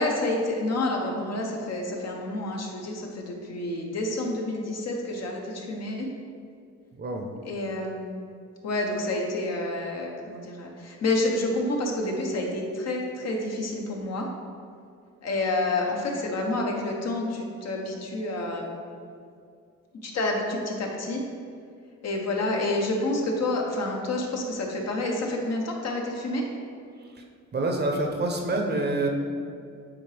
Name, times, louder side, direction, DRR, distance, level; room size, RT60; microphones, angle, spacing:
voice 1, 0.0-6.1 7.4-8.2 8.6-14.3 15.2-18.8 20.0-21.2 22.0-26.4, left 2 dB, 55° left, 0 dB, 1.1 m, -29 dB
voice 2, 7.0-7.3 27.2-27.3 27.5-29.1, right 2 dB, 35° right, 2 dB, 0.8 m, -27 dB
8.6 x 3.6 x 3.4 m, 2.3 s
cardioid pair, 90°, 30 cm